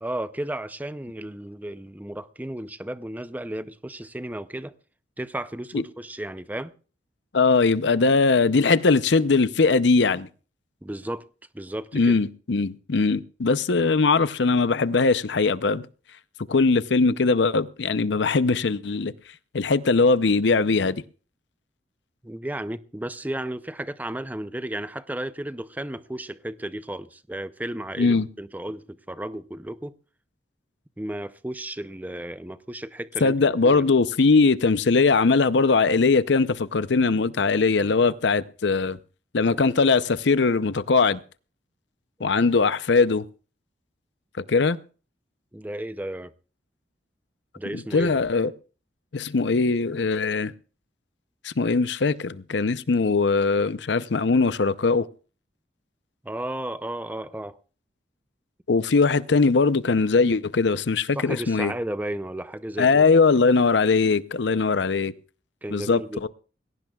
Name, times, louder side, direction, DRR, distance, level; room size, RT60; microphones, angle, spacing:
voice 1, 0.0-4.7 5.2-6.7 10.8-11.2 11.5-12.2 22.2-29.9 31.0-33.3 33.6-33.9 45.5-46.3 47.6-48.2 56.2-57.6 61.2-63.0 65.6-66.3, right 1 dB, 10° right, 0.6 m, -33 dB
voice 2, 7.3-10.3 11.9-15.8 16.5-19.1 19.5-21.0 28.0-28.3 33.2-39.0 39.3-41.2 42.2-43.2 44.5-44.8 47.7-48.5 49.1-50.5 51.4-55.1 58.7-61.7 62.8-65.1 65.7-66.3, left 4 dB, 70° left, 0.6 m, -21 dB
21.5 x 17.0 x 2.3 m
head